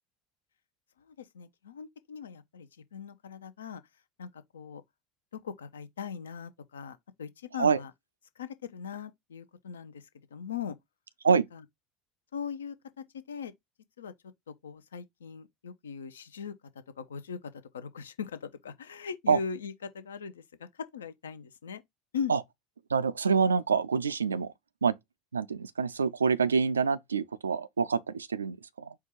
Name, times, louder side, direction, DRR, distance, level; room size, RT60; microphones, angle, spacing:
voice 1, 1.1-3.8 4.2-4.8 5.4-7.9 8.4-10.0 10.3-10.8 12.3-13.5 14.0-14.1 14.6-16.5 17.0-17.4 17.7-20.7 20.9-21.8 22.1-22.3, left 6 dB, 80° left, 0.5 m, -40 dB
voice 2, 22.9-24.5 24.8-25.0 25.3-28.9, right 5 dB, 85° right, 0.3 m, -26 dB
4.6 x 2.3 x 4.3 m
figure-of-eight pair, 70°, 0 cm